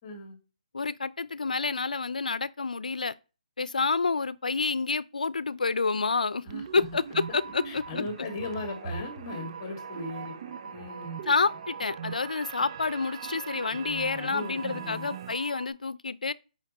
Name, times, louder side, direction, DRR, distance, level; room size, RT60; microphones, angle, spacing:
voice 1, 0.0-0.4 6.4-6.8 7.3-7.4 7.6-10.3 10.6-11.3 13.7-15.1, left 3 dB, 30° left, 2.2 m, -38 dB
voice 2, 0.7-3.1 3.6-6.4 6.7-7.8 11.3-16.3, left 4 dB, 85° left, 0.5 m, -28 dB
sound 1, 6.5-15.3, right 7 dB, 40° right, 0.5 m, -41 dB
sound 2, 7.1-15.7, right 5 dB, 75° right, 3.0 m, -45 dB
6.4 x 5.1 x 5.3 m
hypercardioid pair, 160°, 4 cm